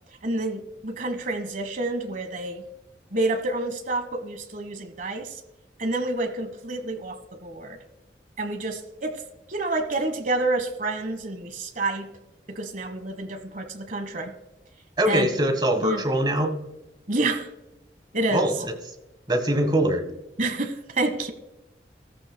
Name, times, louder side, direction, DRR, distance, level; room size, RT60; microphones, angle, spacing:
voice 1, 0.2-2.6 3.1-5.3 5.8-7.8 8.4-9.2 9.5-12.1 12.5-14.3 15.1-15.3 15.8-16.0 17.1-17.5 18.1-18.5 20.4-21.3, right 2 dB, 45° right, 8 dB, 1.3 m, -28 dB
voice 2, 15.0-16.6 18.3-18.7 19.3-20.0, right 1 dB, 25° right, 5 dB, 1.3 m, -23 dB
15.5 x 14.0 x 2.2 m, 1.0 s
head